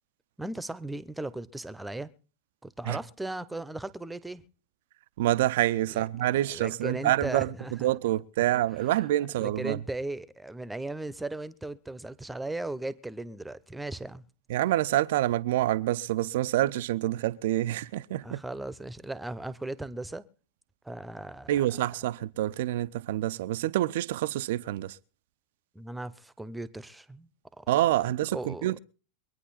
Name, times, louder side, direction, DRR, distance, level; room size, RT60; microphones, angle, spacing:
voice 1, 0.4-2.1 2.6-4.4 5.9-6.0 6.5-7.9 9.4-14.2 18.2-20.3 20.8-21.6 25.7-27.3 27.6-27.7 28.3-28.7, right 2 dB, 5° right, 1.0 m, -37 dB
voice 2, 5.2-7.5 7.8-9.8 14.5-18.4 21.5-25.0 27.7-28.8, right 14 dB, 55° right, 0.6 m, -27 dB
23.5 x 9.8 x 4.2 m
figure-of-eight pair, 90°, 0 cm